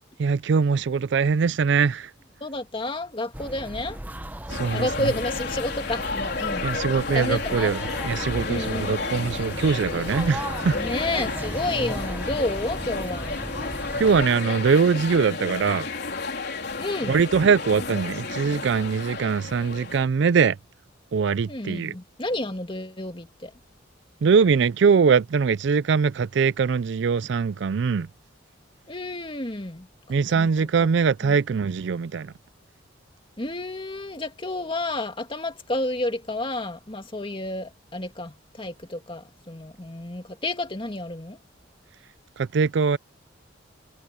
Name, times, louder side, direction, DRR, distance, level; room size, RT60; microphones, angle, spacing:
voice 1, 0.2-2.1 4.5-4.9 6.6-7.8 8.0-10.8 14.0-15.9 17.1-20.6 21.1-21.9 24.2-28.1 30.1-32.3 42.4-43.0, right 5 dB, 60° right, 0.4 m, -22 dB
voice 2, 2.4-4.0 4.7-6.7 7.1-7.8 8.4-9.0 10.7-13.4 16.7-17.2 21.5-23.5 28.9-29.9 30.3-30.5 30.8-30.9 31.2-31.4 33.4-41.4, left 2 dB, 25° left, 2.4 m, -30 dB
sound 1, 3.3-14.3, right 1 dB, 10° right, 0.9 m, -35 dB
sound 2, 4.5-20.1, left 4 dB, 60° left, 4.3 m, -32 dB
head